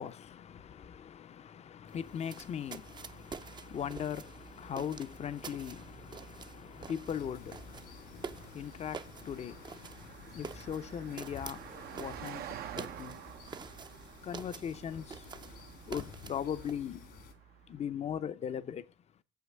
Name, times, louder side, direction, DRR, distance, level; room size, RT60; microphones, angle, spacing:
voice 1, 0.0-13.4 14.2-15.3 15.8-17.2 17.7-18.9, left 8 dB, 40° left, 0.6 m, -40 dB
sound 1, 1.9-16.7, right 5 dB, 25° right, 0.5 m, -48 dB
Car passing by, 2.2-17.9, right 11 dB, 65° right, 0.7 m, -51 dB
sound 2, 7.1-17.3, left 7 dB, 75° left, 2.1 m, -53 dB
7.4 x 5.8 x 6.1 m
cardioid pair, 110°, 17 cm